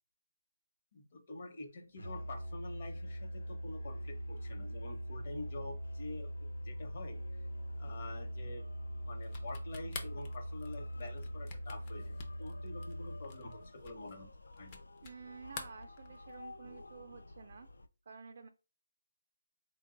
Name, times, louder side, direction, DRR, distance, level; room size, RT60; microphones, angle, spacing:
voice 1, 0.9-6.3 6.6-7.2 7.8-8.6 9.1-14.3 14.5-14.8, left 2 dB, 35° left, 3 dB, 0.9 m, -47 dB
Musical instrument, 2.0-13.7, equal, 70° left, 1.0 m, -42 dB
sound 1, 2.7-17.9, left 2 dB, 90° left, 0.4 m, -54 dB
sound 2, 9.2-15.2 15.5-16.5, left 4 dB, 20° left, 0.5 m, -48 dB
voice 2, 15.0-17.7 18.1-18.5, right 5 dB, 40° right, 5 dB, 0.3 m, -51 dB
3.6 x 2.2 x 3.7 m, 0.33 s
hypercardioid pair, 170°, 0 cm